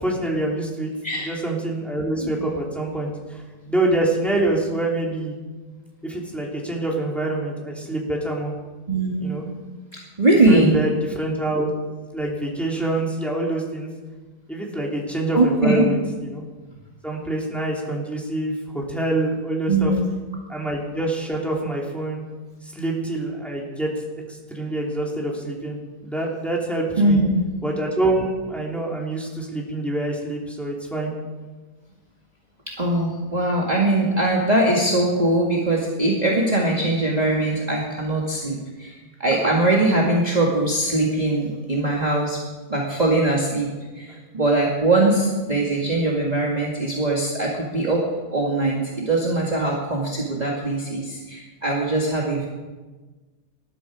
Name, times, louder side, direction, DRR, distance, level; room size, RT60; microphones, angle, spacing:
voice 1, 0.0-0.9 1.2-5.3 6.0-8.5 9.2-9.4 10.5-10.9 11.1-11.7 12.1-13.9 14.5-16.4 17.0-19.9 20.5-22.2 22.6-23.9 24.3-25.8 26.0-27.2 27.6-31.1 44.1-44.2, right 2 dB, ahead, -2 dB, 3.0 m, -26 dB
voice 2, 1.0-1.4 2.2-2.3 8.9-9.4 10.2-10.7 15.4-15.9 19.7-20.1 27.0-27.4 32.8-42.4 42.7-43.7 44.0-48.1 48.3-52.5, right 2 dB, 25° right, -3 dB, 2.0 m, -21 dB
20.0 x 12.5 x 4.9 m, 1.3 s
omnidirectional pair, 1.9 m